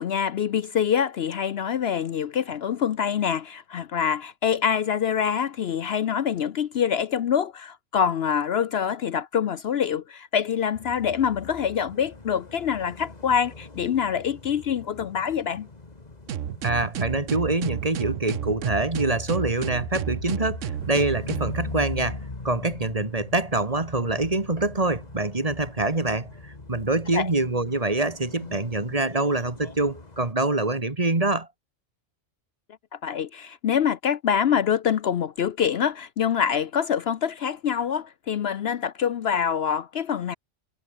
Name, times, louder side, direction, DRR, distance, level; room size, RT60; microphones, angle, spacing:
voice 1, 0.0-15.7 27.1-27.3 33.0-40.3, left 8 dB, 60° left, 0.9 m, -25 dB
sound 1, 10.8-30.3, left 3 dB, 35° left, 2.2 m, -41 dB
sound 2, 16.3-21.6, right 10 dB, 85° right, 1.2 m, -31 dB
voice 2, 16.6-20.6 20.9-31.5, right 2 dB, 30° right, 2.0 m, -25 dB
omnidirectional pair, 1.3 m